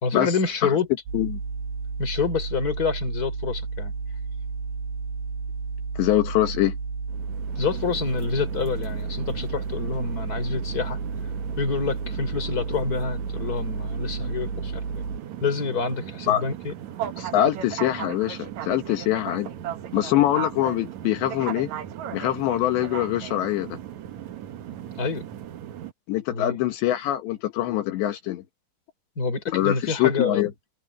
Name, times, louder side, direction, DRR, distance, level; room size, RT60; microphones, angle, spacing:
voice 1, 0.0-0.9 2.0-3.9 7.6-11.0 11.6-14.8 15.4-16.7 24.9-25.3 26.3-26.6 29.2-30.5, left 4 dB, 20° left, 4.2 m, -27 dB
sound 1, 1.1-15.2, right 4 dB, 60° right, 8.4 m, -32 dB
voice 2, 6.0-6.8 16.3-16.4 17.2-19.5 19.9-21.7 22.1-23.8 26.1-28.4 29.5-30.5, left 13 dB, 75° left, 3.6 m, -24 dB
sound 2, 7.1-25.9, right 11 dB, 75° right, 1.7 m, -37 dB
omnidirectional pair, 5.2 m